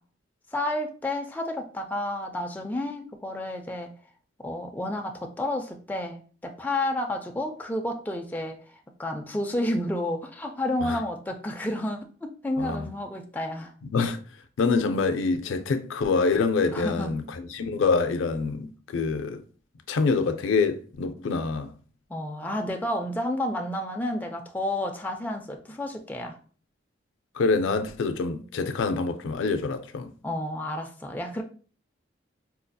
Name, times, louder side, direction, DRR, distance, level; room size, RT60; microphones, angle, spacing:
voice 1, 0.5-3.9 4.4-8.6 9.0-13.7 16.7-17.1 22.1-26.4 30.2-31.4, left 1 dB, 10° left, 0.3 m, -30 dB
voice 2, 12.6-12.9 13.8-14.2 14.6-19.4 19.9-21.7 27.3-30.1, left 4 dB, 80° left, 0.4 m, -26 dB
4.2 x 2.6 x 2.2 m
head